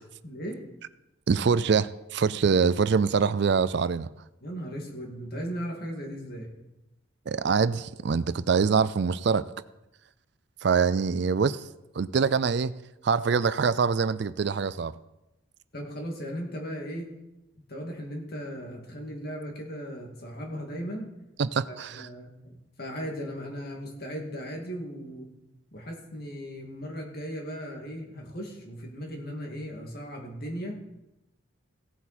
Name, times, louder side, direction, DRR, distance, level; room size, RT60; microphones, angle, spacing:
voice 1, 0.2-0.6 4.4-6.5 15.7-17.1 17.7-21.1 21.9-25.3 25.7-30.7, equal, 50° left, 1 dB, 2.4 m, -37 dB
voice 2, 1.3-4.1 7.3-9.5 10.6-11.6 12.0-12.7 13.0-14.9 21.4-22.1, right 5 dB, 55° right, 16 dB, 0.4 m, -24 dB
17.0 x 8.1 x 4.3 m, 0.94 s
head